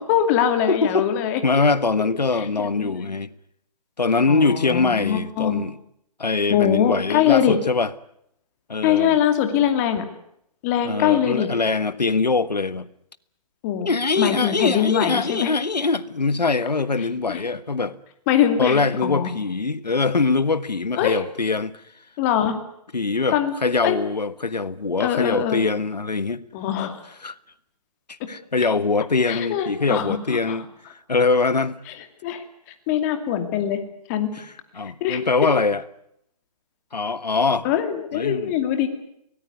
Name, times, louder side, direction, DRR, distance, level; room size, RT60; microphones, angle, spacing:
voice 1, 0.0-1.6 2.3-3.1 4.3-5.6 6.5-7.6 8.8-10.0 10.6-11.5 13.6-13.9 14.2-15.5 17.3-17.4 18.3-19.4 20.9-21.2 22.2-22.6 23.3-23.5 23.8-24.0 25.0-25.6 26.5-27.0 29.3-30.6 32.2-32.4 32.9-33.8 34.1-34.3 35.0-35.2 37.6-39.0, left 10 dB, 25° left, 2.5 m, -22 dB
voice 2, 0.7-1.1 1.4-3.3 4.0-5.8 6.2-7.9 8.7-9.2 10.8-12.9 13.9-18.0 18.6-21.7 22.9-26.4 27.2-27.4 28.1-31.8 34.3-35.8 36.9-37.7 38.1-38.5, left 4 dB, 90° left, 1.5 m, -23 dB
24.0 x 18.5 x 9.6 m
figure-of-eight pair, 150°, 21 cm